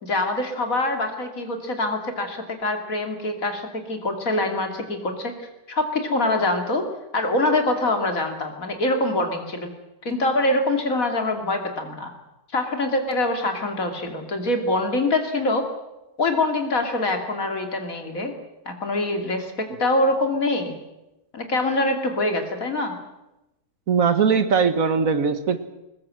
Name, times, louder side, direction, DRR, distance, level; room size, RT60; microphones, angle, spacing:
voice 1, 0.0-5.3 5.7-6.8 7.1-9.7 10.0-12.1 12.5-15.7 16.2-18.3 18.7-20.8 21.3-23.0, left 2 dB, 60° left, 5 dB, 3.1 m, -24 dB
voice 2, 23.9-25.6, right 5 dB, 60° right, 11 dB, 1.7 m, -20 dB
21.0 x 20.0 x 7.7 m, 0.94 s
omnidirectional pair, 1.7 m